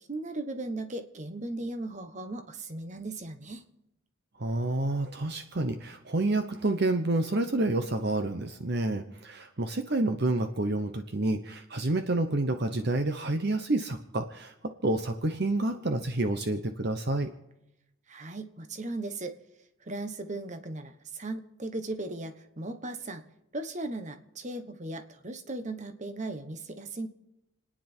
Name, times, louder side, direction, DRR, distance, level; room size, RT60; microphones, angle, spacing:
voice 1, 0.1-3.6 18.1-19.3 19.8-23.2 23.5-27.1, right 2 dB, 35° right, 8 dB, 1.2 m, -37 dB
voice 2, 4.4-17.3, right 2 dB, 50° right, 8 dB, 0.9 m, -29 dB
29.5 x 10.0 x 4.5 m, 0.90 s
head